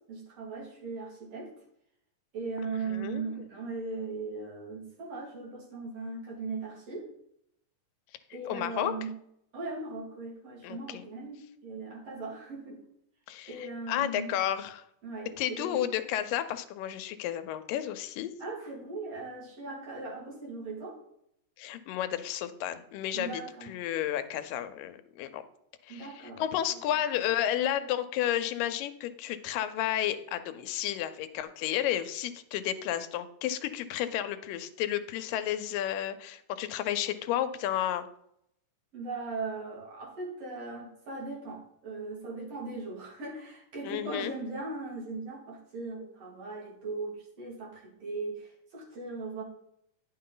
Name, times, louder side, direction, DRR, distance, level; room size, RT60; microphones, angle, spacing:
voice 1, 0.1-1.5 2.3-7.1 8.3-9.1 9.5-12.8 13.5-14.3 15.0-15.9 18.4-21.0 23.1-23.7 25.9-26.4 38.9-49.4, right 3 dB, 50° right, -3 dB, 3.1 m, -38 dB
voice 2, 2.9-3.5 8.5-8.9 10.6-11.1 13.3-14.8 15.4-18.3 21.6-25.4 25.8-38.1 43.8-44.3, left 11 dB, 85° left, 11 dB, 2.3 m, -32 dB
10.5 x 6.1 x 3.8 m, 0.74 s
omnidirectional pair, 3.8 m